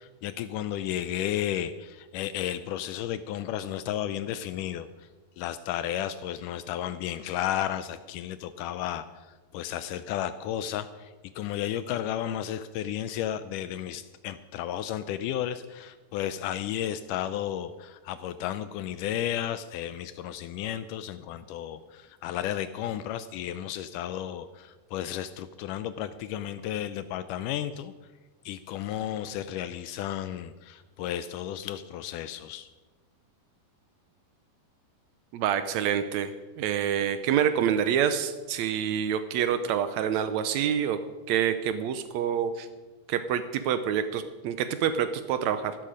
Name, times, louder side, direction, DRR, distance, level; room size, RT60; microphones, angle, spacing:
voice 1, 0.0-5.1 5.4-9.1 9.5-27.9 28.5-32.7, left 11 dB, 80° left, 12 dB, 1.9 m, -33 dB
voice 2, 35.3-41.0 41.3-42.7 43.1-45.8, right 9 dB, 85° right, 10 dB, 1.6 m, -27 dB
15.0 x 12.5 x 5.0 m, 1.2 s
omnidirectional pair, 4.1 m